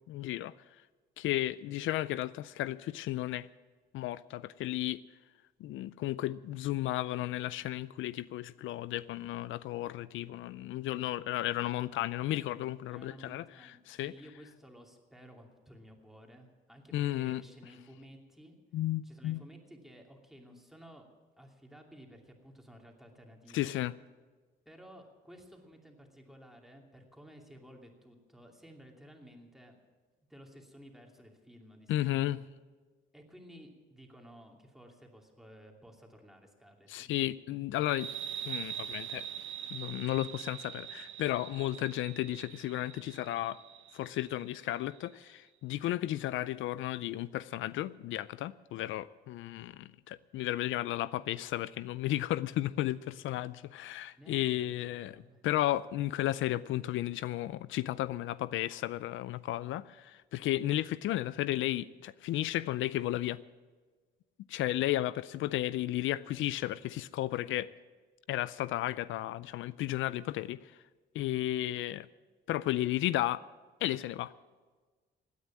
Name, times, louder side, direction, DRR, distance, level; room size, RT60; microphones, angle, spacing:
voice 1, 0.1-0.5 1.2-3.5 3.9-5.0 5.6-13.4 13.9-14.1 16.9-17.4 18.7-19.4 23.5-23.9 31.9-32.4 36.9-38.1 38.5-39.3 39.7-43.6 43.9-63.4 64.5-67.7 68.3-70.7 71.1-72.1 72.5-73.4 73.8-74.3, left 14 dB, 80° left, 17 dB, 0.4 m, -33 dB
voice 2, 12.9-18.6 19.0-21.1 21.4-23.7 24.7-29.8 30.3-32.4 33.1-37.1 54.1-55.4, equal, ahead, 1 dB, 2.7 m, -55 dB
sound 1, 37.9-45.1, right 9 dB, 75° right, 0.8 m, -43 dB
17.0 x 9.7 x 7.4 m, 1.3 s
cardioid pair, 90°, 20 cm